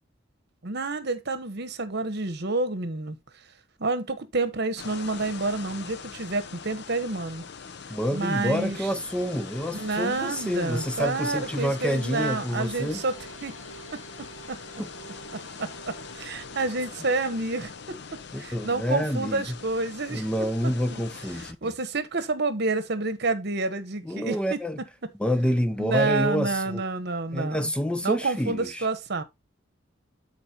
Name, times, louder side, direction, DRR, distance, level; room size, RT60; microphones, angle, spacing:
voice 1, 0.6-3.2 3.8-7.4 8.1-8.9 9.7-13.1 13.4-13.5 13.9-14.0 14.5-14.6 15.6-18.0 18.4-20.3 20.6-21.0 21.6-24.6 25.8-27.7 28.0-29.2, right 3 dB, 60° right, 1.2 m, -29 dB
sound 1, 4.8-21.5, left 6 dB, 60° left, 0.6 m, -43 dB
voice 2, 7.9-13.0 14.8-14.9 18.3-19.4 20.1-21.7 24.0-24.8 25.2-26.8 27.3-28.9, equal, 5° left, 0.5 m, -28 dB
sound 2, 8.0-18.1, right 2 dB, 90° left, 1.6 m, -47 dB
13.0 x 4.4 x 2.9 m
head